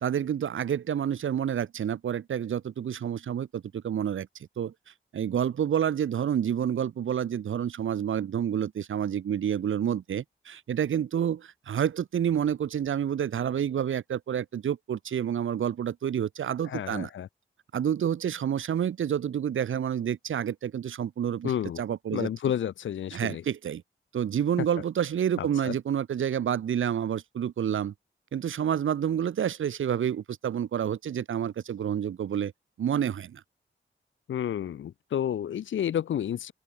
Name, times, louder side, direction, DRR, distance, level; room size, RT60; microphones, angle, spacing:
voice 1, 0.0-4.3 4.6-4.7 5.1-17.1 17.7-22.3 23.1-23.8 24.1-27.9 28.3-32.5 32.8-33.4, right 9 dB, 80° right, 0.8 m, -29 dB
voice 2, 16.6-17.3 21.4-21.8 22.1-23.4 25.4-25.7 34.3-36.5, left 10 dB, 75° left, 0.5 m, -30 dB
open air
wide cardioid pair, 145°, 20 cm